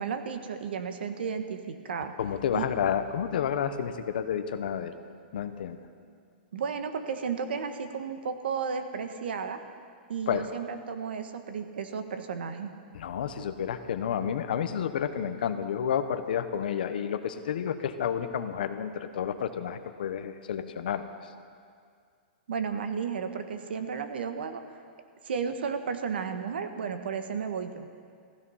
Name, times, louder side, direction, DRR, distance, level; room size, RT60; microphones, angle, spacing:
voice 1, 0.0-2.1 2.5-2.7 6.5-9.6 10.1-12.7 22.5-24.6 25.2-27.9, right 6 dB, 75° right, 8 dB, 1.3 m, -33 dB
voice 2, 2.2-4.9 5.3-5.8 10.3-10.5 12.9-21.3, left 8 dB, 55° left, 9 dB, 1.0 m, -30 dB
15.0 x 15.0 x 5.7 m, 2.2 s
hypercardioid pair, 180°, 6 cm